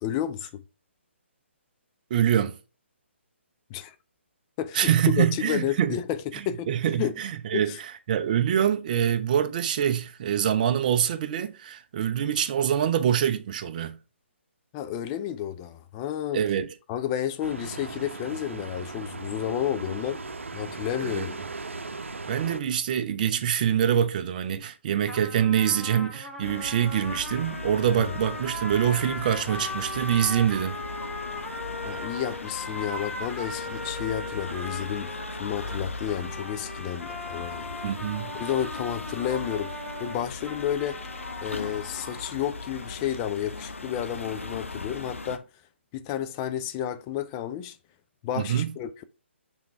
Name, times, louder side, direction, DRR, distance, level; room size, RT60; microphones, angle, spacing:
voice 1, 0.0-0.6 3.7-3.9 4.6-6.7 7.0-7.1 7.5-7.8 14.7-16.4 16.9-20.2 20.5-21.4 31.5-35.1 35.4-37.7 38.4-41.0 41.4-45.4 45.9-47.8 48.2-49.0, left 10 dB, 25° left, 0.4 m, -31 dB
voice 2, 2.1-2.6 4.7-6.0 6.3-14.0 16.3-16.7 21.0-21.3 22.3-30.8 37.8-38.3 48.3-48.7, right 9 dB, 40° right, 0.7 m, -25 dB
sound 1, 17.4-22.6, right 3 dB, 80° right, 0.8 m, -37 dB
sound 2, 25.1-42.2, left 1 dB, ahead, 1.2 m, -38 dB
sound 3, 26.4-45.4, left 3 dB, 85° left, 0.8 m, -38 dB
5.9 x 3.6 x 4.5 m
figure-of-eight pair, 140°, 7 cm